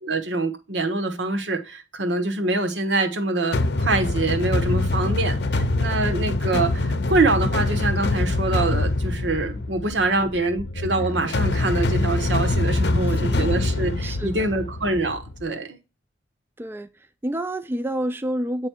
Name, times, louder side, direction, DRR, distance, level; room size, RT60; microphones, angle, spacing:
voice 1, 0.0-15.8, right 2 dB, 80° right, 1.2 m, -25 dB
sound 1, 3.5-15.4, left 2 dB, 60° left, 0.6 m, -24 dB
voice 2, 13.0-13.5 14.0-14.5 16.6-18.7, right 1 dB, 10° right, 0.3 m, -29 dB
9.1 x 3.2 x 4.4 m
head